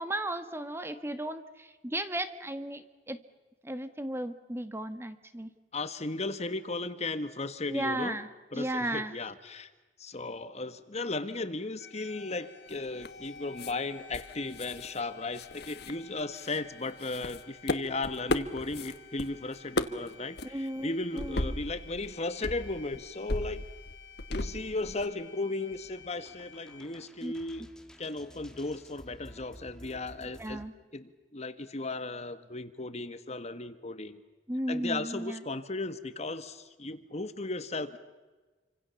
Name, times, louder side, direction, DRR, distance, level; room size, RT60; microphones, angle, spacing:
voice 1, 0.0-3.2 3.6-5.5 7.7-8.3 8.5-9.2 20.4-21.6 27.2-27.3 30.4-30.7 34.5-35.4, right 1 dB, 15° right, 10 dB, 1.5 m, -35 dB
voice 2, 5.7-8.2 8.5-9.7 10.0-23.6 24.3-27.7 28.0-30.6 30.9-34.2 34.7-38.0, left 2 dB, 40° left, 11 dB, 1.5 m, -36 dB
sound 1, 11.8-26.8, left 6 dB, 80° left, 3.7 m, -53 dB
sound 2, 12.7-13.3 13.6-13.7 14.1-15.0 15.3-16.6 17.0-19.3 19.5-20.1 20.4-20.5 21.2-22.1 22.4-25.1, left 2 dB, 65° left, 1.5 m, -35 dB
sound 3, 25.7-30.7, equal, 5° left, 2.2 m, -53 dB
28.5 x 25.5 x 7.1 m, 1.2 s
head